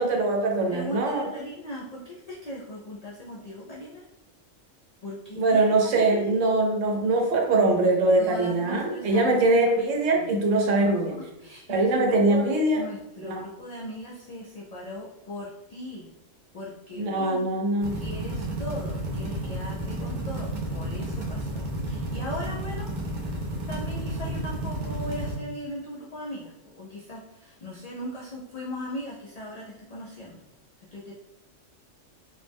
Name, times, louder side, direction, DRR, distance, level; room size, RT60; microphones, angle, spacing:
voice 1, 0.0-1.3 5.4-11.2 11.7-12.8 13.2-13.4 17.0-17.9, right 2 dB, 85° right, 2 dB, 1.0 m, -22 dB
voice 2, 0.7-4.0 5.0-5.7 6.0-6.4 8.2-9.6 10.3-10.4 10.8-16.1 16.5-17.5 17.9-22.9 23.7-30.4 30.9-31.1, equal, 85° left, -4 dB, 0.3 m, -38 dB
sound 1, 17.8-25.4, right 1 dB, 50° right, 0.6 m, -32 dB
2.5 x 2.0 x 3.3 m, 0.94 s
omnidirectional pair, 1.3 m